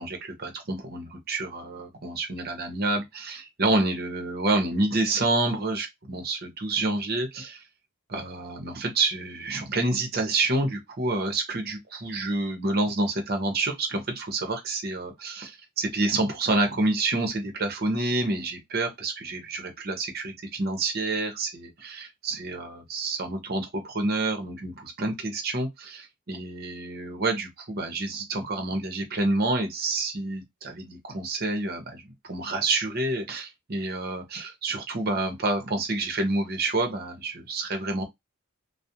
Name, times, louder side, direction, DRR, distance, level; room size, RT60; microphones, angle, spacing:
voice 1, 0.0-7.6 8.1-38.0, right 2 dB, 45° right, 0.7 m, -28 dB
2.4 x 2.0 x 2.7 m
head